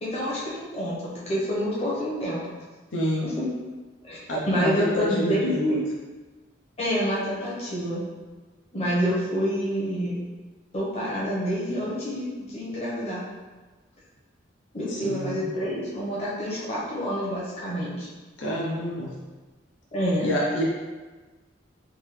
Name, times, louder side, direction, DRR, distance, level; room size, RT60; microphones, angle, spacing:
voice 1, 0.0-2.5 3.2-3.5 4.0-4.2 4.5-5.8 6.8-8.0 8.7-10.2 10.7-13.3 14.7-18.1 19.9-20.3, equal, 30° left, -7 dB, 1.0 m, -27 dB
voice 2, 2.9-3.2 4.3-5.8 14.9-15.4 18.4-19.1 20.2-20.6, equal, 70° left, -4 dB, 0.6 m, -28 dB
3.6 x 2.7 x 3.2 m, 1.3 s
head